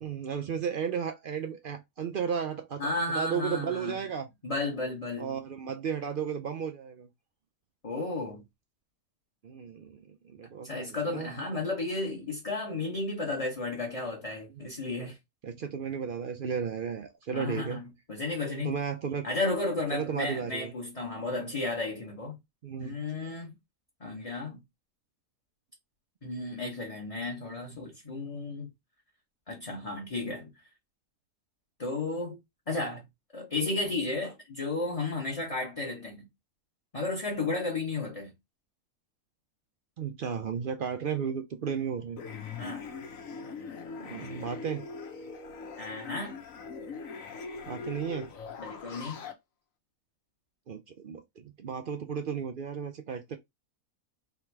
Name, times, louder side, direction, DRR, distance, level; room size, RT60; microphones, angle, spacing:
voice 1, 0.0-4.3 5.2-7.1 9.4-11.3 14.6-14.7 15.4-17.8 18.6-19.3 19.9-20.7 21.2-21.5 22.6-23.0 40.0-42.2 43.4-43.5 44.0-44.9 47.7-48.3 50.7-53.4, right 7 dB, 70° right, 0.5 m, -34 dB
voice 2, 2.8-4.0 4.4-5.4 7.8-8.4 10.6-15.2 17.3-18.8 19.2-22.4 22.8-23.5 24.0-24.6 26.2-28.7 29.5-30.5 31.8-32.4 32.7-33.0 33.3-36.3 36.9-38.3 42.6-42.9 45.8-46.4 48.6-49.2, left 3 dB, 25° left, 1.1 m, -33 dB
sound 1, 42.2-49.3, left 5 dB, 65° left, 1.3 m, -41 dB
3.5 x 3.0 x 4.5 m
omnidirectional pair, 1.5 m